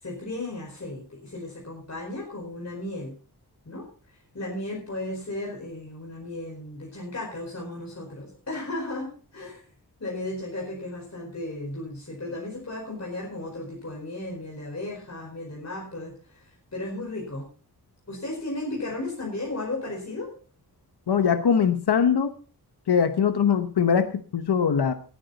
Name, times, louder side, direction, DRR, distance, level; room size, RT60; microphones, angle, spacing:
voice 1, 0.0-3.1 3.7-3.8 4.3-9.6 10.0-16.4 16.7-17.5 18.1-20.3, left 2 dB, 40° left, -1 dB, 4.8 m, -35 dB
voice 2, 21.1-22.3 22.9-24.9, left 7 dB, 80° left, 9 dB, 1.1 m, -22 dB
18.5 x 11.0 x 4.0 m, 0.39 s
wide cardioid pair, 105°, 39 cm